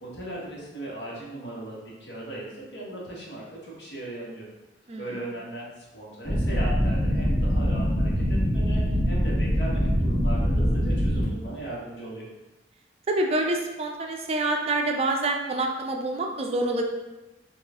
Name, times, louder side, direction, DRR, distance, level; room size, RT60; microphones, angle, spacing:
voice 1, 0.0-4.4 5.0-12.3, right 1 dB, 75° left, -4 dB, 1.2 m, -38 dB
sound 1, 6.3-11.2, equal, 20° left, 1.1 m, -23 dB
voice 2, 13.1-16.8, right 2 dB, 35° right, 2 dB, 0.4 m, -27 dB
4.4 x 2.4 x 3.5 m, 1.0 s
head